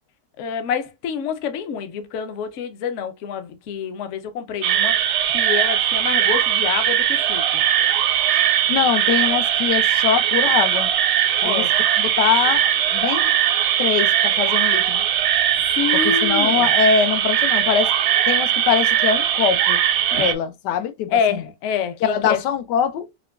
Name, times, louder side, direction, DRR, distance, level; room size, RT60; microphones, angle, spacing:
voice 1, 0.4-7.4 11.4-11.7 15.8-16.7 20.1-20.3 21.1-22.4, left 7 dB, 65° left, 0.8 m, -27 dB
sound 1, 4.6-20.3, right 10 dB, 80° right, 1.1 m, -19 dB
voice 2, 8.7-10.9 11.4-11.6 12.0-13.3 13.8-15.0 16.0-17.9 18.3-19.8 20.2-21.4 22.0-23.1, left 8 dB, 90° left, 1.2 m, -22 dB
5.8 x 2.2 x 2.3 m
omnidirectional pair, 1.8 m